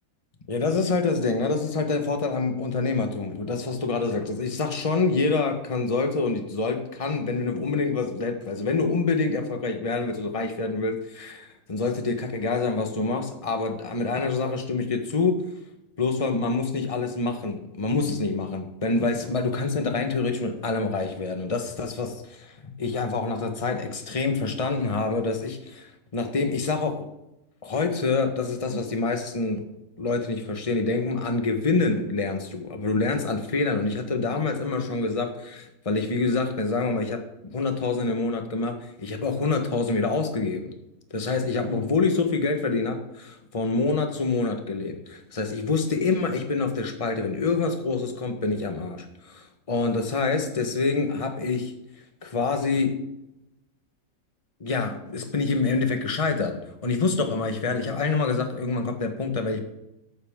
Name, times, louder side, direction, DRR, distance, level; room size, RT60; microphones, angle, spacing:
voice 1, 0.5-15.4 16.0-27.0 27.6-29.6 30.0-40.7 41.1-51.7 52.2-52.9 54.6-59.6, left 3 dB, 20° left, 5 dB, 1.3 m, -26 dB
14.5 x 12.0 x 3.8 m, 0.89 s
omnidirectional pair, 1.7 m